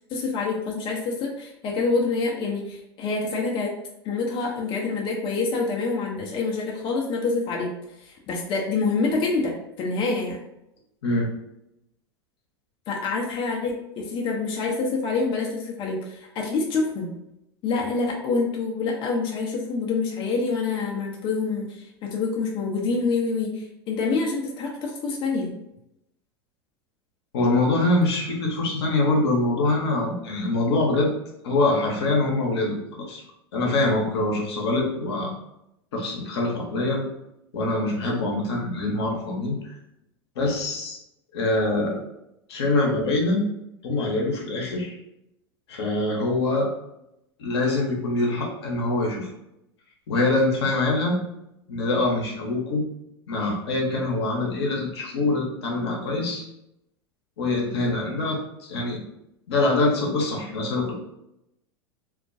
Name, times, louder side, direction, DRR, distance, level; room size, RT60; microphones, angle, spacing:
voice 1, 0.1-3.7 4.0-7.7 8.0-10.4 12.9-17.1 17.6-25.5, left 4 dB, 40° left, -1 dB, 0.5 m, -26 dB
voice 2, 27.3-31.1 31.4-32.8 33.1-33.2 33.5-35.3 35.9-37.0 37.5-39.7 40.4-41.0 41.3-42.0 42.5-43.4 43.8-44.9 45.7-46.7 47.4-49.3 50.1-51.2 51.7-52.8 53.3-56.4 57.4-58.4 58.7-59.0 59.5-60.9, left 2 dB, 75° left, -1 dB, 0.8 m, -24 dB
2.3 x 2.1 x 2.5 m, 0.84 s
hypercardioid pair, 90°, 14 cm